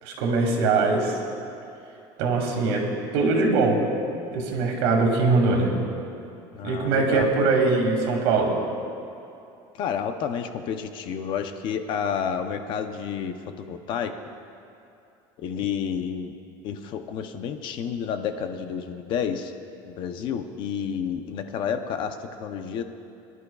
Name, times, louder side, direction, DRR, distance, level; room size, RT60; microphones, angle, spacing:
voice 1, 0.0-1.2 2.2-2.8 3.1-3.8 4.3-5.7 6.6-8.5, right 3 dB, 85° right, 1 dB, 2.1 m, -22 dB
voice 2, 6.5-7.5 9.7-14.2 15.4-16.3 16.6-19.5 19.8-22.8, left 7 dB, 40° left, 7 dB, 0.6 m, -30 dB
23.5 x 11.0 x 2.3 m, 2.7 s
cardioid pair, 175°, 12 cm